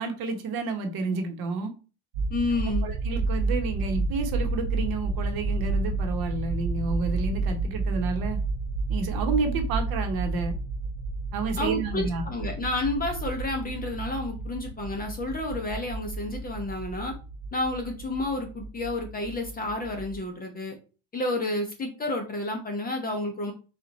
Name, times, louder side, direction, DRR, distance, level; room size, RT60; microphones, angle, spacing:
voice 1, 0.0-1.7 2.8-8.4 8.9-10.6 11.3-12.2, right 4 dB, 50° right, 5 dB, 1.0 m, -30 dB
sound 1, 2.1-20.2, right 3 dB, 85° right, 1.4 m, -31 dB
voice 2, 2.3-2.9 11.6-17.1 17.5-20.7 21.1-23.5, left 2 dB, 20° left, 3 dB, 0.7 m, -30 dB
4.4 x 2.4 x 3.9 m, 0.33 s
cardioid pair, 140°, 46 cm